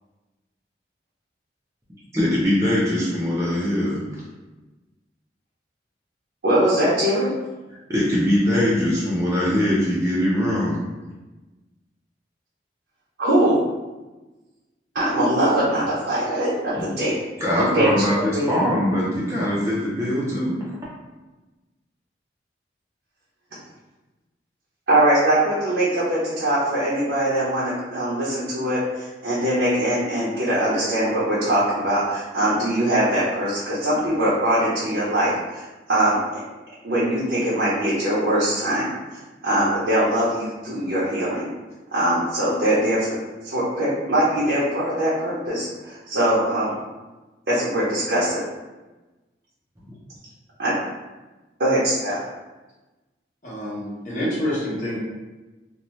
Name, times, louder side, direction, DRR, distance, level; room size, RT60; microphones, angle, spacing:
voice 1, 2.1-4.0 7.7-10.8 16.7-16.8 17.4-20.6, left 1 dB, 15° right, -7 dB, 0.4 m, -22 dB
voice 2, 6.4-7.3 13.2-13.6 14.9-17.1 17.5-18.6 24.9-35.6 35.9-36.2 36.8-38.9 39.4-41.5 41.9-43.2 43.4-46.7 47.5-48.4 50.6-50.7 51.6-52.2, right 1 dB, 65° right, -9 dB, 0.7 m, -22 dB
voice 3, 53.4-55.0, left 1 dB, 45° left, -7 dB, 0.9 m, -27 dB
2.6 x 2.1 x 3.1 m, 1.1 s
head